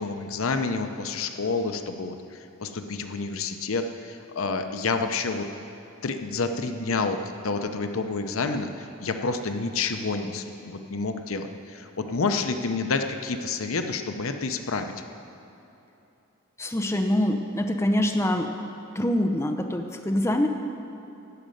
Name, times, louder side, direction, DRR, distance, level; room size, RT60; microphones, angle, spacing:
voice 1, 0.0-2.2 2.6-5.5 6.0-14.9, left 4 dB, 85° left, 7 dB, 0.7 m, -29 dB
voice 2, 16.6-18.5 19.0-20.5, left 1 dB, 15° left, 4 dB, 0.6 m, -24 dB
13.5 x 5.3 x 9.1 m, 2.9 s
head